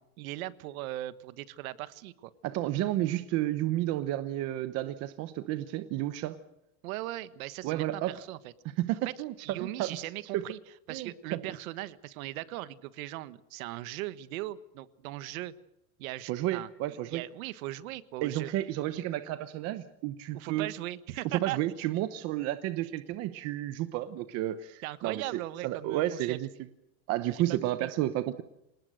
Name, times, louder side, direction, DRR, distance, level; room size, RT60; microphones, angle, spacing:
voice 1, 0.0-2.3 6.8-8.5 9.4-10.6 10.9-15.5 16.0-18.5 18.9-19.0 20.3-21.6 24.8-26.4 27.3-27.9, right 16 dB, 70° right, 14 dB, 1.4 m, -39 dB
voice 2, 2.4-6.4 7.6-8.1 8.6-10.0 10.3-10.4 10.9-11.1 11.5-11.6 16.3-17.2 18.2-20.7 21.3-26.5 27.1-28.4, right 14 dB, 35° right, 11 dB, 0.9 m, -31 dB
27.5 x 19.0 x 6.6 m, 0.85 s
supercardioid pair, 175°, 44 cm